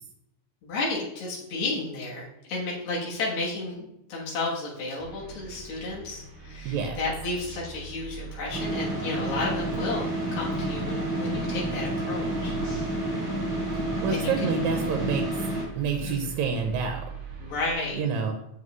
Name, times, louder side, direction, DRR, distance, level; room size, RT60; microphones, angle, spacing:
voice 1, 0.6-12.5 14.1-14.5 16.0-16.3 17.4-18.0, left 2 dB, 70° left, -5 dB, 2.7 m, -32 dB
sound 1, 5.0-17.7, right 5 dB, 40° right, 1.2 m, -42 dB
voice 2, 6.7-7.0 14.0-15.3 15.8-17.0 18.0-18.3, right 5 dB, 75° right, 4 dB, 2.0 m, -27 dB
sound 2, 8.5-15.6, right 1 dB, 15° right, 2.5 m, -30 dB
7.4 x 5.8 x 3.1 m, 0.81 s
omnidirectional pair, 3.4 m